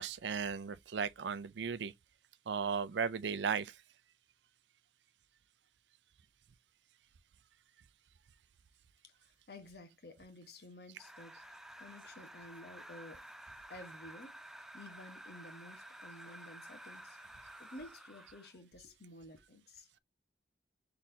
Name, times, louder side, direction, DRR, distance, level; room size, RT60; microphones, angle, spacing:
voice 1, 0.0-1.9 2.5-3.8, right 6 dB, 85° right, 0.5 m, -36 dB
voice 2, 9.0-13.2 13.7-17.2 17.6-19.9, left 1 dB, 65° left, 1.2 m, -53 dB
sound 1, 11.0-18.6, right 1 dB, ahead, 0.3 m, -52 dB
4.1 x 3.6 x 2.7 m
head